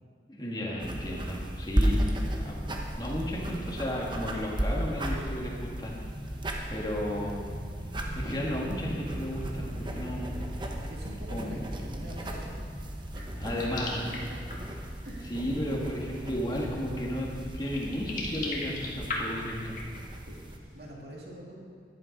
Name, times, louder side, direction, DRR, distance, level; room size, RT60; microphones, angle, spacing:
voice 1, 0.3-2.0 2.5-2.6 3.0-6.0 6.7-7.4 8.1-10.3 11.3-11.6 13.4-14.2 15.3-19.8, equal, 25° left, -3 dB, 1.8 m, -33 dB
sound 1, 0.8-20.6, equal, 25° right, 1.0 m, -35 dB
voice 2, 10.8-12.6 13.1-13.4 15.0-15.4 20.3-21.6, right 1 dB, 65° right, -2 dB, 2.4 m, -45 dB
sound 2, 13.5-14.8 15.8-15.9 16.5-16.6 17.4-20.3, left 2 dB, 45° left, 1.9 m, -37 dB
11.0 x 11.0 x 5.3 m, 2.1 s
head